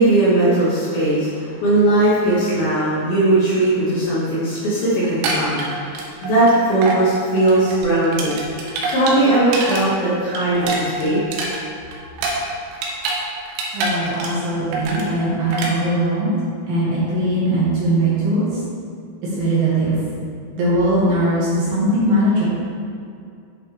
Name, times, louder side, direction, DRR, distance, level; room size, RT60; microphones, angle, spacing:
voice 1, 0.0-8.4 8.9-11.2, right 2 dB, 60° left, -10 dB, 2.9 m, -18 dB
sound 1, 5.0-6.5 6.8-7.0 7.4-9.8 10.1-13.2 13.5-14.5 14.7-15.1 15.5-15.7, right 3 dB, 80° right, 3.6 m, -25 dB
voice 2, 13.7-16.3 16.6-18.5 19.4-20.0 20.6-22.5, right 1 dB, 65° right, -8 dB, 3.4 m, -20 dB
9.7 x 5.5 x 3.5 m, 2.4 s
omnidirectional pair, 5.8 m